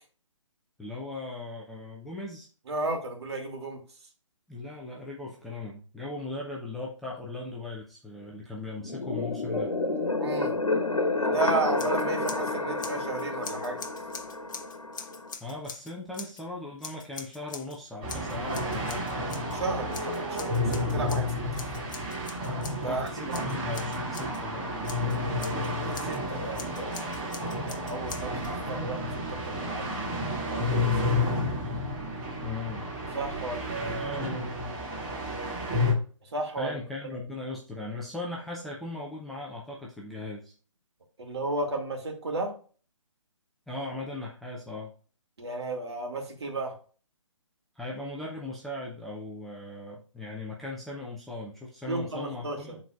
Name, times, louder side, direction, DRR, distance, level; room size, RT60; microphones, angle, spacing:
voice 1, 0.8-2.5 4.5-9.7 15.4-19.1 22.8-25.7 32.4-32.8 33.8-34.7 36.6-40.5 43.7-44.9 47.8-52.8, left 2 dB, ahead, -5 dB, 0.4 m, -38 dB
voice 2, 2.7-3.8 10.2-10.5 11.1-13.8 19.5-21.4 22.8-23.4 25.8-27.1 27.4-29.9 30.5-31.3 33.1-34.2 36.3-36.8 41.2-42.5 45.4-46.8 51.9-52.8, right 2 dB, 55° right, 2 dB, 2.2 m, -33 dB
sound 1, 8.8-15.3, left 2 dB, 80° left, 1.2 m, -30 dB
Scissors, 11.7-12.5 12.8-16.4 16.8-17.8 18.1-19.6 19.9-24.4 24.8-26.2 26.5-28.5, left 5 dB, 35° left, 0.9 m, -44 dB
sound 2, 18.0-35.9, left 1 dB, 25° right, 2.2 m, -31 dB
11.0 x 4.1 x 2.4 m, 0.39 s
figure-of-eight pair, 140°, 17 cm